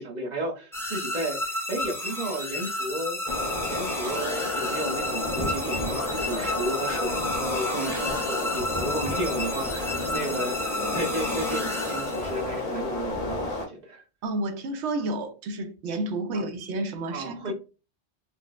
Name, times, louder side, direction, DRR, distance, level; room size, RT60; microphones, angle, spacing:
voice 1, 0.0-3.2 3.7-14.0 16.3-16.5 17.1-17.5, right 1 dB, 45° right, 0.7 m, -33 dB
sound 1, 0.7-12.6, left 1 dB, 5° left, 0.5 m, -32 dB
sound 2, 3.3-13.7, left 2 dB, 40° left, 0.7 m, -31 dB
sound 3, 5.9-9.2, left 6 dB, 75° left, 0.9 m, -38 dB
voice 2, 14.2-17.5, right 2 dB, 75° right, 0.9 m, -30 dB
4.0 x 2.0 x 2.3 m
omnidirectional pair, 1.2 m